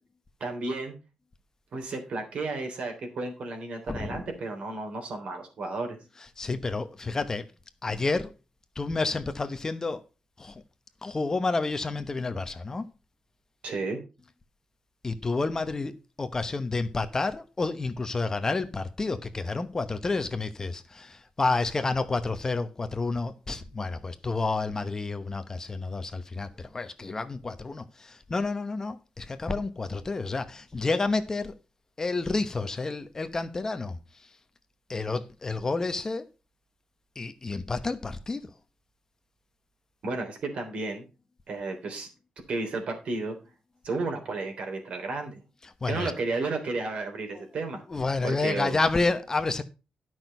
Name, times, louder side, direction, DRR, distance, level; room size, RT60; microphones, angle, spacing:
voice 1, 0.4-0.9 1.7-6.0 13.6-14.0 40.0-41.0 41.5-42.1 42.5-43.4 43.8-45.4 45.9-47.8 48.2-48.8, right 3 dB, 60° right, 3.5 m, -32 dB
voice 2, 3.9-4.3 6.4-7.4 7.8-8.3 8.8-10.0 10.4-10.6 11.0-12.9 15.0-31.5 32.0-34.0 34.9-36.3 37.2-38.5 45.6-46.1 47.3-47.5 47.9-49.6, left 3 dB, 25° left, 1.0 m, -30 dB
11.5 x 6.2 x 5.4 m
wide cardioid pair, 140°, 2 cm